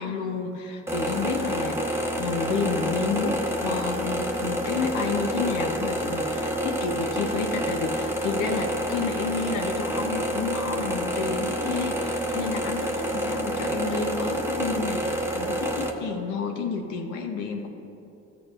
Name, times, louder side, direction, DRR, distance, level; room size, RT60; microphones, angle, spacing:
voice 1, 0.0-17.7, left 5 dB, 80° left, 3 dB, 0.7 m, -30 dB
sound 1, 0.9-15.9, equal, 10° right, 0.8 m, -28 dB
13.5 x 6.9 x 2.5 m, 2.8 s
cardioid pair, 90°, 30 cm